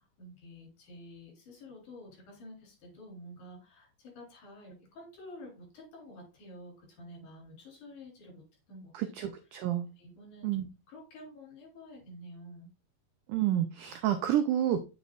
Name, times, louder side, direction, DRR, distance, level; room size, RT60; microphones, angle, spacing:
voice 1, 0.2-8.4 8.7-9.1 9.5-9.6 10.0-10.6 10.9-12.7, left 1 dB, 55° left, -1 dB, 5.2 m, -50 dB
voice 2, 8.9-9.9 10.4-10.7 13.3-14.8, right 11 dB, 85° right, 7 dB, 1.8 m, -29 dB
8.2 x 7.3 x 2.5 m, 0.29 s
omnidirectional pair, 4.5 m